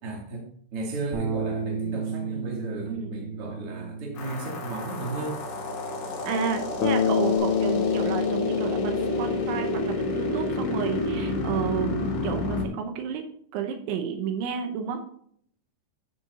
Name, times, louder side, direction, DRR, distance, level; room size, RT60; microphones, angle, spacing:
voice 1, 0.0-5.4, right 2 dB, 35° right, -1 dB, 2.7 m, -35 dB
Bass guitar, 1.1-7.4, right 5 dB, 60° right, 4.4 m, -35 dB
voice 2, 2.8-3.1 6.2-13.2 13.5-15.0, right 7 dB, 80° right, 5 dB, 3.2 m, -31 dB
sound 1, 4.2-12.7, left 2 dB, 60° left, 4.0 m, -30 dB
Bass guitar 2, 6.8-11.0, left 8 dB, 80° left, 2.7 m, -28 dB
14.0 x 7.0 x 2.8 m, 0.63 s
omnidirectional pair, 5.5 m